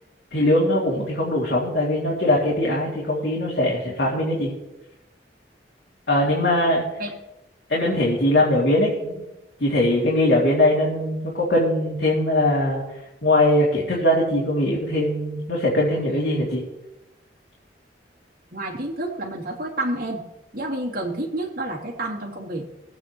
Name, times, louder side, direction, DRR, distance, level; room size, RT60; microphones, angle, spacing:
voice 1, 0.3-4.5 6.1-6.8 7.7-9.2 9.6-12.8 13.2-16.6, left 1 dB, 70° left, -4 dB, 2.6 m, -21 dB
voice 2, 18.5-20.2 20.5-22.7, right 1 dB, 55° right, -3 dB, 2.9 m, -29 dB
21.5 x 8.8 x 3.1 m, 0.99 s
head